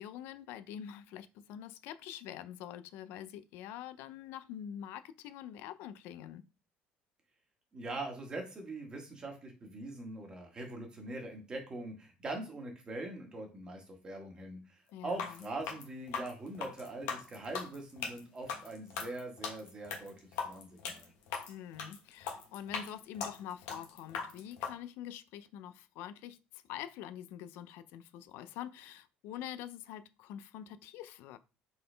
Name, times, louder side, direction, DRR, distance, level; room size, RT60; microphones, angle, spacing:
voice 1, 0.0-6.4 14.9-15.5 21.5-31.4, left 10 dB, 70° left, 0.4 m, -45 dB
voice 2, 7.7-20.1 20.4-21.1, right 2 dB, 20° right, 1.3 m, -42 dB
sound 1, 15.1-24.7, left 6 dB, 90° left, 1.1 m, -40 dB
4.1 x 3.7 x 3.3 m
cardioid pair, 160°, 4 cm